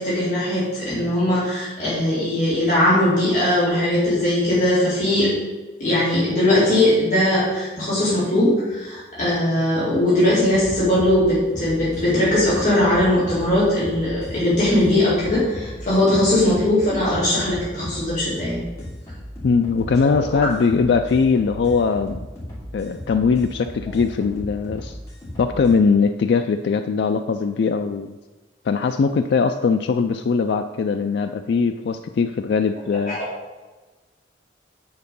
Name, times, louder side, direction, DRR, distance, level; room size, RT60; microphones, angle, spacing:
voice 1, 0.0-5.3 5.8-18.6 20.0-20.4 33.1-33.3, left 1 dB, 40° left, -10 dB, 2.6 m, -20 dB
sound 1, 10.5-25.7, left 1 dB, 15° left, 3.0 m, -36 dB
voice 2, 19.4-22.2 22.7-25.0 25.4-28.2 28.6-33.2, left 5 dB, 65° left, 7 dB, 0.3 m, -20 dB
8.7 x 4.6 x 5.3 m, 1.2 s
head